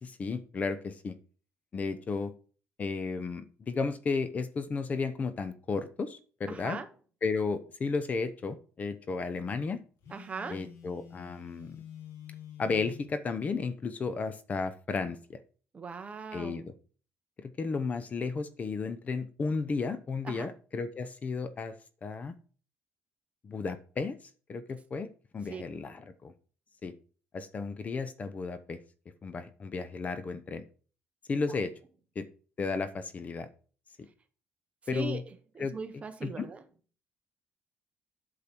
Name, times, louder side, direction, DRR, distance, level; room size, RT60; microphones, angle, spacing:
voice 1, 0.0-1.1 1.7-2.3 2.8-6.8 7.2-9.8 10.5-11.8 12.6-15.4 16.3-16.7 17.4-21.7 22.0-22.3 23.4-24.2 24.5-25.1 25.3-26.3 26.8-26.9 27.3-28.8 29.2-30.6 31.3-31.7 32.2-32.3 32.6-33.5 34.9-35.2 35.6-35.7 36.2-36.5, left 4 dB, 30° left, 0.8 m, -33 dB
voice 2, 6.5-6.9 10.1-10.7 15.7-16.6 20.2-20.5 25.5-25.6 34.9-36.6, right 4 dB, 25° right, 1.2 m, -40 dB
Telephone, 10.0-13.1, left 8 dB, 70° left, 2.5 m, -48 dB
8.5 x 6.7 x 4.5 m
cardioid pair, 140°, 5 cm